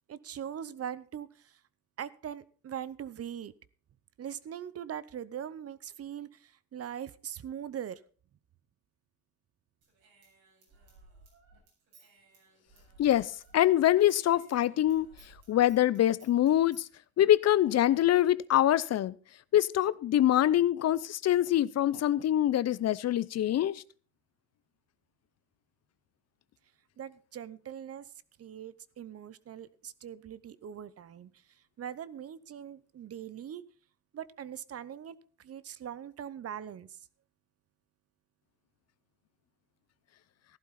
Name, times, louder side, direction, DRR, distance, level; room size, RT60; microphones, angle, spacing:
voice 1, 0.1-1.6 2.0-3.5 4.2-8.0 27.0-28.1 28.4-31.3 31.8-33.6 34.1-37.1, right 9 dB, 50° right, 0.9 m, -41 dB
Human voice / Scissors, 9.8-13.6 13.8-16.9, right 3 dB, 80° right, 7.7 m, -60 dB
voice 2, 13.0-15.1 15.5-16.9 17.2-19.1 19.5-23.8, left 12 dB, 60° left, 0.6 m, -24 dB
14.5 x 12.0 x 4.2 m
cardioid pair, 90°, 30 cm